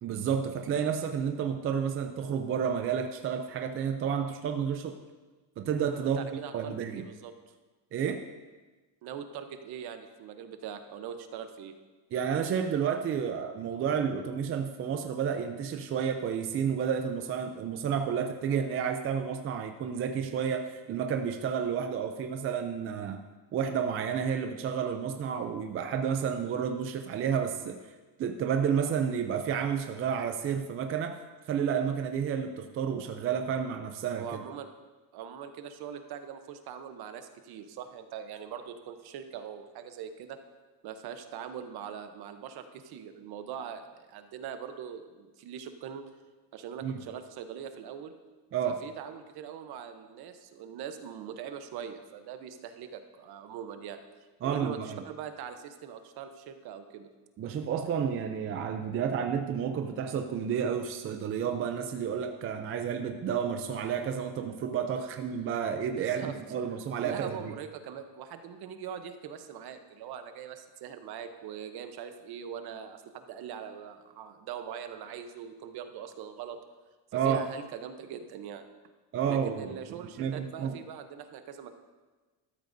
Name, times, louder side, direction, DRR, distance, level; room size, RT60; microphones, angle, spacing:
voice 1, 0.0-5.0 5.6-6.3 6.5-7.0 7.9-8.2 12.1-23.2 23.5-27.8 28.2-31.2 31.5-34.2 46.8-47.0 48.5-48.8 54.4-55.0 57.4-67.4 77.1-77.4 79.1-79.7 80.2-80.7, right 7 dB, 30° right, 5 dB, 0.4 m, -31 dB
voice 2, 6.0-7.3 9.0-11.7 34.2-34.7 35.1-40.4 40.8-46.0 46.5-48.1 48.6-54.0 54.4-57.1 64.9-65.1 65.9-66.3 67.0-76.6 77.1-78.7 79.3-81.7, right 8 dB, 55° right, 8 dB, 0.9 m, -42 dB
13.0 x 13.0 x 2.6 m, 1.3 s
cardioid pair, 175°, 44 cm